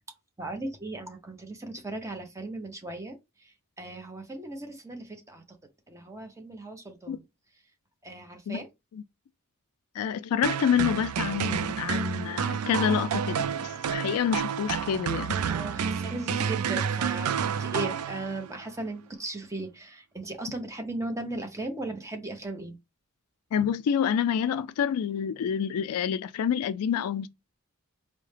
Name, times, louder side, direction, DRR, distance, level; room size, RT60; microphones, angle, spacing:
voice 1, 0.4-5.4 5.9-7.2 8.0-8.7 15.5-22.8, right 2 dB, 15° right, 0.7 m, -37 dB
voice 2, 10.0-15.4 23.5-27.3, left 8 dB, 85° left, 0.3 m, -28 dB
sound 1, 10.4-18.6, right 7 dB, 80° right, 0.4 m, -29 dB
4.5 x 2.1 x 3.2 m
head